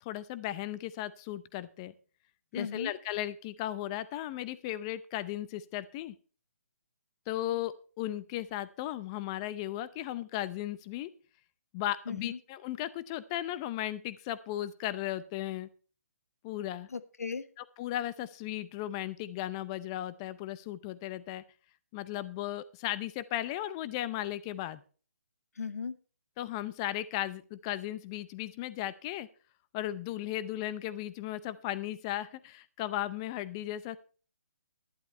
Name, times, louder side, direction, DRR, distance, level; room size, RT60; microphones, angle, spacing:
voice 1, 0.0-1.9 2.5-6.2 7.3-11.1 11.7-15.7 16.4-16.9 17.6-21.4 21.9-24.8 26.4-29.3 29.7-34.0, left 13 dB, 20° left, 16 dB, 0.6 m, -36 dB
voice 2, 2.5-2.9 12.1-12.4 16.9-17.4 25.6-26.0, left 5 dB, 85° left, 14 dB, 1.2 m, -36 dB
11.5 x 11.0 x 4.3 m, 0.38 s
hypercardioid pair, 160°, 8 cm